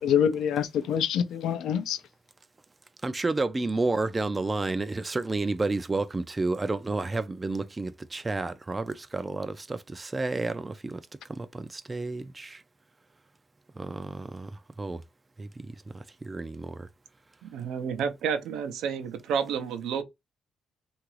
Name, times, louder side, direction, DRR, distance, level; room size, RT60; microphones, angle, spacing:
voice 1, 0.0-2.0, left 8 dB, 80° left, 0.4 m, -26 dB
voice 2, 3.0-11.0 11.4-12.6 13.8-14.5 14.8-15.0 15.4-15.7 15.9-16.9, right 3 dB, 20° right, 0.3 m, -31 dB
voice 3, 17.4-20.0, right 7 dB, 85° right, 0.5 m, -30 dB
2.9 x 2.4 x 3.1 m
cardioid pair, 90°, 0 cm